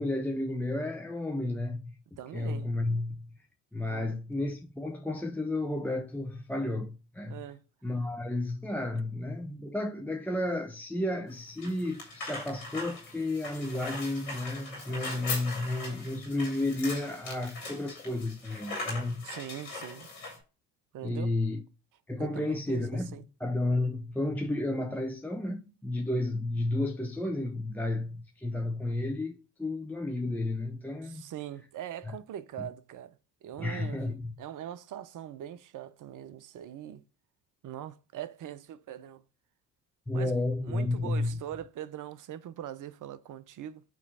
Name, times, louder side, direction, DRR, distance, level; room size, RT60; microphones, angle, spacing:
voice 1, 0.0-2.0 2.3-3.3 3.7-7.4 7.8-19.2 21.0-21.6 22.1-31.2 32.1-32.2 33.6-34.3 40.1-41.4, left 2 dB, 5° left, 0.6 m, -32 dB
voice 2, 2.2-2.8 3.9-4.2 7.3-7.6 19.2-20.1 20.9-21.3 22.2-23.3 31.0-34.0 34.4-37.0 37.6-39.2 40.1-43.8, right 11 dB, 40° right, 0.7 m, -42 dB
sound 1, 11.3-20.4, left 3 dB, 85° left, 3.0 m, -40 dB
8.2 x 3.1 x 5.5 m
hypercardioid pair, 60°, 50 cm